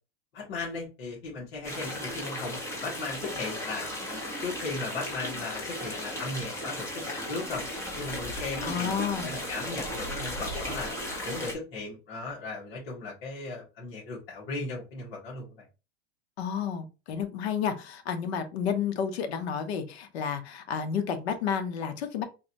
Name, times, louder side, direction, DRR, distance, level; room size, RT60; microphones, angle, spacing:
voice 1, 0.3-3.9 4.4-7.6 8.0-10.9 11.2-15.7, left 3 dB, 70° left, -6 dB, 2.0 m, -37 dB
sound 1, 1.6-11.5, left 1 dB, 10° left, 1.0 m, -35 dB
voice 2, 8.6-9.3 16.4-22.2, left 7 dB, 90° left, 7 dB, 1.0 m, -31 dB
3.9 x 2.7 x 3.0 m, 0.30 s
supercardioid pair, 145°, 31 cm